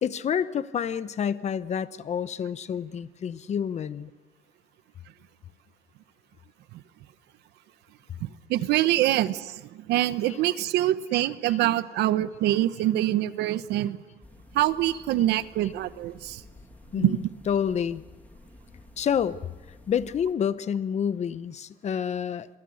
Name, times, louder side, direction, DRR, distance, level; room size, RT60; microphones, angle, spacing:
voice 1, 0.0-4.1 11.5-11.6 16.9-17.2 17.5-18.0 19.0-19.4 19.9-22.5, left 8 dB, 40° left, 14 dB, 0.9 m, -28 dB
voice 2, 8.2-14.0 14.5-16.4 16.9-17.2, right 14 dB, 80° right, 14 dB, 1.1 m, -25 dB
sound 1, 14.2-20.3, left 1 dB, 10° left, 2.2 m, -51 dB
27.5 x 23.0 x 6.5 m, 1.2 s
cardioid pair, 110°, 17 cm